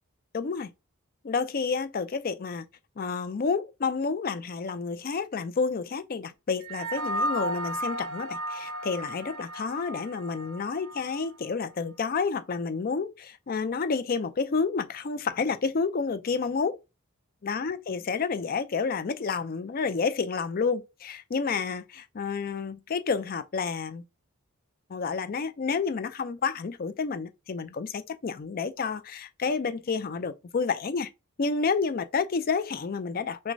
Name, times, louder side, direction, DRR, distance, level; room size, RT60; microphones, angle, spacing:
voice 1, 0.3-0.7 1.2-2.6 3.0-16.8 17.4-24.0 24.9-31.1 31.4-33.5, left 5 dB, 40° left, 0.4 m, -30 dB
sound 1, 6.6-11.3, right 1 dB, 70° right, 0.8 m, -34 dB
6.1 x 2.2 x 2.6 m
head